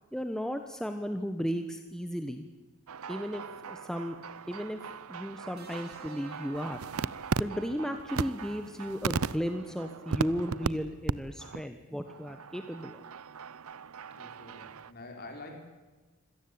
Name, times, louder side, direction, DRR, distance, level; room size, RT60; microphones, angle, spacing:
voice 1, 0.1-2.5 3.1-4.2 4.5-4.8 5.1-6.8 7.4-13.0, equal, 5° left, 7 dB, 1.1 m, -35 dB
sound 1, 2.9-10.7 11.1-11.2 11.4-11.7 12.1-14.9, right 5 dB, 90° right, 0.7 m, -37 dB
sound 2, 5.6-7.8 9.1-9.4, right 2 dB, 45° right, 4.2 m, -54 dB
voice 2, 14.1-15.6, left 2 dB, 45° left, 3 dB, 5.0 m, -46 dB
25.5 x 18.0 x 8.6 m, 1.3 s
head